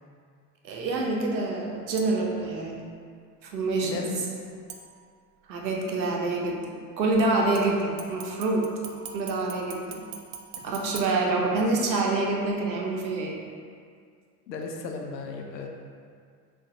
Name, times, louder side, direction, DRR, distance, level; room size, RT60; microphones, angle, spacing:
voice 1, 0.6-2.8 3.4-4.0 5.5-8.7 9.1-10.0 10.6-13.4, right 2 dB, 85° right, 0 dB, 0.7 m, -26 dB
sound 1, 2.0-2.4 4.7-5.4 7.5-11.9 12.4-12.5, right 8 dB, 40° right, 0.4 m, -44 dB
voice 2, 3.8-4.2 11.4-11.5 14.5-15.7, left 4 dB, 80° left, 2 dB, 0.6 m, -35 dB
6.1 x 2.5 x 2.6 m, 2.1 s
figure-of-eight pair, 65°, 50 cm